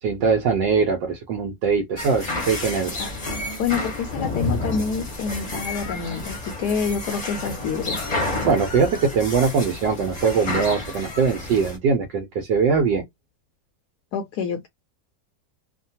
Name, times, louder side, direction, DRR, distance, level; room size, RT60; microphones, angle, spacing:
voice 1, 0.0-3.0 8.4-13.0, right 5 dB, 75° right, 1.3 m, -21 dB
sound 1, 2.0-11.8, left 2 dB, 30° left, 0.8 m, -30 dB
voice 2, 3.6-8.0 14.1-14.7, left 6 dB, 70° left, 1.1 m, -27 dB
3.2 x 2.2 x 2.7 m
omnidirectional pair, 2.0 m